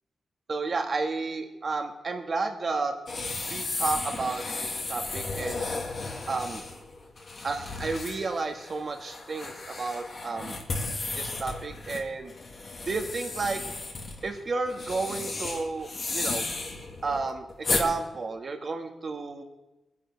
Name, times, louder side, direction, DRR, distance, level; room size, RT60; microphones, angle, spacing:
voice 1, 0.5-2.9 3.5-5.7 6.3-6.6 7.4-10.5 11.2-12.3 12.9-13.6 14.2-16.5 17.0-19.4, right 3 dB, 45° right, 5 dB, 1.7 m, -32 dB
sound 1, 3.1-17.9, left 3 dB, 45° left, 2.3 m, -34 dB
21.0 x 10.0 x 4.6 m, 1.0 s
cardioid pair, 105°, 0 cm